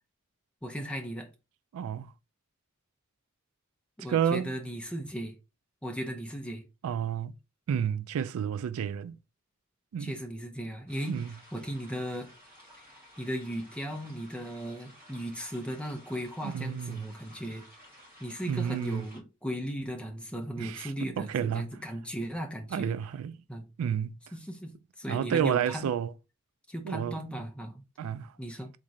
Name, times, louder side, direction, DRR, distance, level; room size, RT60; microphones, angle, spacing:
voice 1, 0.6-1.3 4.0-5.3 5.8-6.6 10.0-11.2 11.5-12.3 13.2-17.7 18.2-22.9 23.5-23.7 24.3-24.7 25.0-25.9 26.7-28.1 28.4-28.7, equal, 5° left, 0.6 m, -36 dB
voice 2, 1.7-2.1 4.1-4.5 6.8-7.4 7.7-9.2 9.9-10.2 11.1-11.3 16.4-17.1 18.5-19.0 20.6-21.7 22.7-23.4 23.8-24.2 25.1-26.1 26.8-27.2 28.0-28.3, right 8 dB, 90° right, 0.3 m, -30 dB
sound 1, 10.9-19.2, equal, 10° right, 1.7 m, -55 dB
3.6 x 2.6 x 3.1 m
head